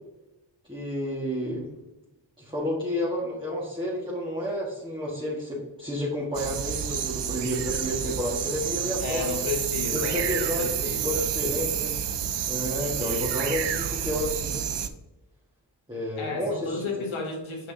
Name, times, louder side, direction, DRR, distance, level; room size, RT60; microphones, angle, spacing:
voice 1, 0.7-1.7 2.4-9.4 9.9-11.9 12.5-14.6 15.9-16.9, left 1 dB, 10° right, -6 dB, 1.8 m, -30 dB
sound 1, 6.3-14.9, right 9 dB, 65° right, 0.6 m, -29 dB
voice 2, 9.0-11.3 12.8-13.2 16.2-17.7, left 3 dB, 80° left, 1 dB, 1.2 m, -33 dB
6.0 x 5.5 x 2.9 m, 1.0 s
cardioid pair, 45°, 47 cm